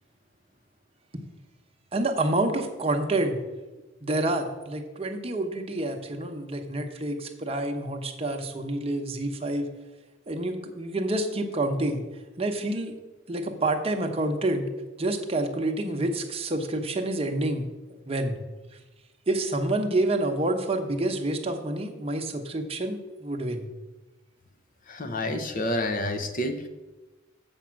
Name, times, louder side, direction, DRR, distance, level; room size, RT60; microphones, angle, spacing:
voice 1, 1.9-3.4 4.0-9.7 10.3-12.0 12.4-13.0 13.3-14.7 15.0-17.7 18.1-18.4 19.3-23.6, right 2 dB, 30° right, 3 dB, 0.9 m, -28 dB
voice 2, 24.9-26.6, left 1 dB, 45° left, 7 dB, 0.9 m, -29 dB
7.0 x 5.5 x 7.4 m, 1.1 s
head